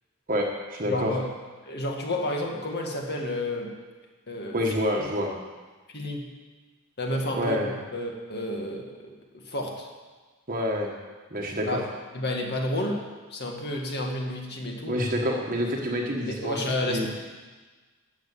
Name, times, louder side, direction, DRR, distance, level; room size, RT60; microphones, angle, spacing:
voice 1, 0.3-1.1 4.5-5.3 7.3-7.8 10.5-10.9 11.3-11.8 14.9-17.1, equal, 40° right, 0 dB, 1.4 m, -27 dB
voice 2, 0.9-1.3 1.6-3.7 4.3-4.6 5.9-6.3 7.0-9.9 11.6-11.8 12.1-13.0 13.3-15.0 16.3-17.1, left 1 dB, 50° left, 1 dB, 2.1 m, -31 dB
13.5 x 8.0 x 8.3 m, 1.3 s
head